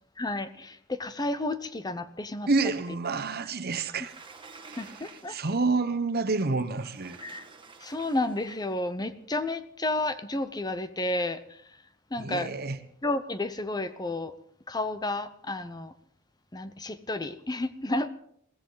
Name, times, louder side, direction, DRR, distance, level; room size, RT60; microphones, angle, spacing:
voice 1, 0.2-2.5 4.8-5.4 7.2-7.5 7.8-11.6 12.1-12.5 13.0-14.3 14.7-15.9 16.5-18.1, left 2 dB, 20° left, 0.8 m, -31 dB
voice 2, 2.5-4.2 4.7-4.9 5.3-7.2 12.2-12.8, right 3 dB, 50° right, 1.1 m, -28 dB
Sliding door, 3.7-5.7 6.6-8.8, right 4 dB, 25° right, 1.7 m, -50 dB
21.5 x 16.0 x 4.0 m
head